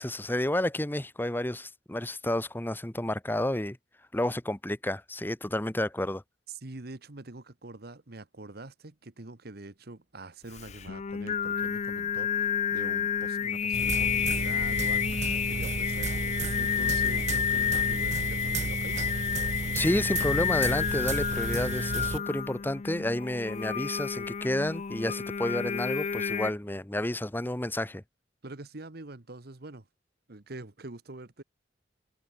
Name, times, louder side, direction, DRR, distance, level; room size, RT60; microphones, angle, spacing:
voice 1, 0.0-3.8 4.1-6.2 19.7-28.0, left 1 dB, 10° left, 1.0 m, -30 dB
voice 2, 6.5-19.0 28.4-29.9 30.3-31.4, right 2 dB, 60° right, 1.4 m, -45 dB
Singing, 10.5-26.5, left 7 dB, 40° left, 0.4 m, -30 dB
sound 1, 13.7-22.2, right 5 dB, 40° right, 0.4 m, -33 dB
head